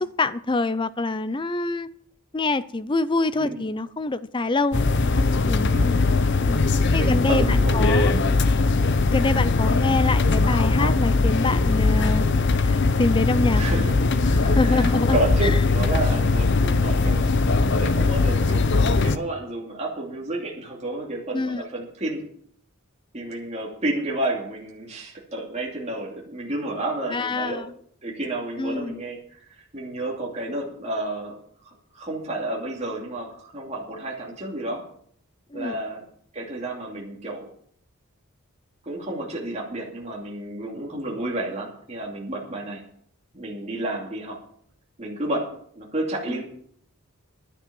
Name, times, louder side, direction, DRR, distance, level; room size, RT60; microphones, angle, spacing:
voice 1, 0.0-1.9 2.3-4.9 5.5-5.7 6.4-6.6 6.9-8.1 9.1-13.9 14.2-15.5 21.3-21.6 27.1-27.7 28.6-29.0 35.5-35.8 46.3-46.4, left 2 dB, 20° left, 0.5 m, -26 dB
sound 1, 4.7-19.2, left 3 dB, 55° left, 0.8 m, -20 dB
voice 2, 6.9-7.8 13.6-14.0 14.5-22.2 23.1-27.7 28.0-31.3 31.6-34.8 35.5-36.0 36.3-37.5 38.8-42.8 43.3-44.4 45.0-45.5 45.7-46.4, right 1 dB, 30° right, 2.7 m, -31 dB
11.0 x 8.6 x 7.0 m
head